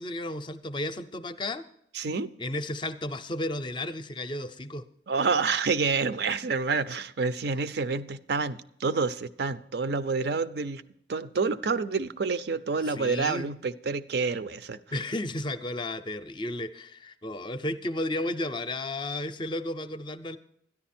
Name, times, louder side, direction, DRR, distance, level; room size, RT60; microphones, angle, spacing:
voice 1, 0.0-1.7 2.4-4.8 12.8-13.5 14.9-20.4, left 1 dB, 25° left, 11 dB, 0.5 m, -33 dB
voice 2, 1.9-2.4 5.1-10.8 11.1-14.8, right 4 dB, 55° right, 14 dB, 0.5 m, -28 dB
13.0 x 10.5 x 4.3 m, 0.71 s
head